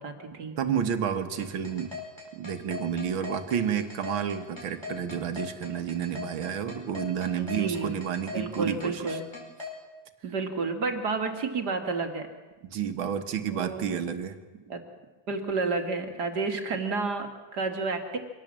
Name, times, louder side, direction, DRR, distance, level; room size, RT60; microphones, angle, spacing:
voice 1, 0.0-0.5 7.4-8.0 8.3-9.3 10.2-12.3 13.5-13.8 14.7-14.8 15.3-18.2, right 4 dB, 55° right, 6 dB, 2.5 m, -30 dB
voice 2, 0.6-1.9 2.3-9.2 12.7-14.4, right 8 dB, 80° right, 8 dB, 2.2 m, -30 dB
sound 1, 1.4-9.7, left 5 dB, 10° left, 5.0 m, -39 dB
24.5 x 17.5 x 7.5 m, 1.3 s
omnidirectional pair, 2.2 m